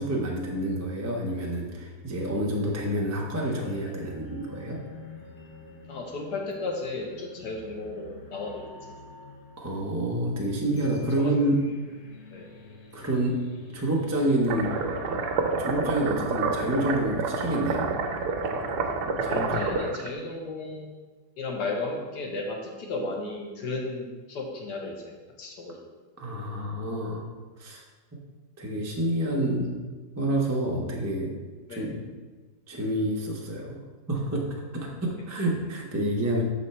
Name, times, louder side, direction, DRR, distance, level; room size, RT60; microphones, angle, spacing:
voice 1, 0.0-4.8 9.6-11.6 12.9-13.3 13.7-14.7 15.6-17.9 19.2-19.5 26.2-27.3 27.6-27.8 28.6-29.8 30.2-31.3 31.7-32.0 32.7-33.8 34.1-34.4 34.7-36.4, right 1 dB, 25° right, -2 dB, 0.3 m, -28 dB
sound 1, 3.6-16.6, left 3 dB, 55° left, 0.5 m, -48 dB
voice 2, 5.9-8.6 11.2-11.3 12.3-12.5 19.3-20.9 21.4-25.9 31.7-31.9, left 3 dB, 75° left, 1 dB, 1.6 m, -34 dB
sound 2, 14.5-20.1, right 4 dB, 75° right, 1.2 m, -28 dB
6.5 x 4.2 x 4.2 m, 1.3 s
omnidirectional pair, 1.8 m